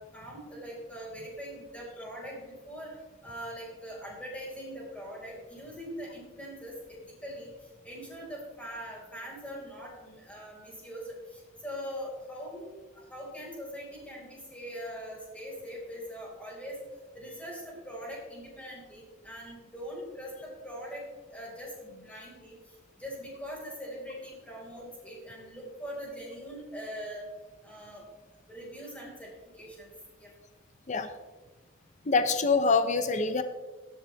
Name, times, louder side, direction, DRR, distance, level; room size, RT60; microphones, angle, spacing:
voice 1, 0.0-2.9 3.2-7.5 7.8-16.8 17.1-21.0 21.3-22.6 23.0-27.3 27.6-28.0 28.5-29.3 29.5-29.9 30.2-30.3, equal, 5° left, -4 dB, 5.1 m, -42 dB
voice 2, 32.1-33.4, left 4 dB, 40° left, 9 dB, 0.8 m, -25 dB
17.5 x 10.5 x 3.5 m, 1.3 s
head